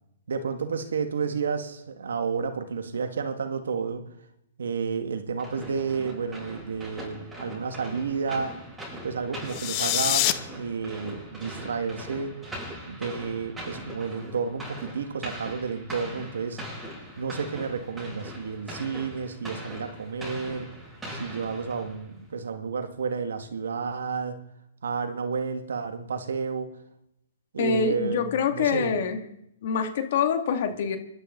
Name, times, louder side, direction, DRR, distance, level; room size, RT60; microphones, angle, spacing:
voice 1, 0.3-4.0 4.6-8.5 9.0-12.4 12.9-16.6 17.2-20.7 21.2-24.4 24.8-26.7 27.5-29.0, right 5 dB, 80° right, 7 dB, 2.1 m, -31 dB
sound 1, 5.4-22.2, equal, 5° right, 7.5 m, -41 dB
sound 2, 9.5-10.3, left 16 dB, 40° left, 0.9 m, -24 dB
voice 2, 27.6-29.2 29.6-31.0, left 6 dB, 55° left, 6 dB, 2.5 m, -25 dB
25.5 x 11.5 x 4.0 m, 0.80 s
hypercardioid pair, 140°, 0 cm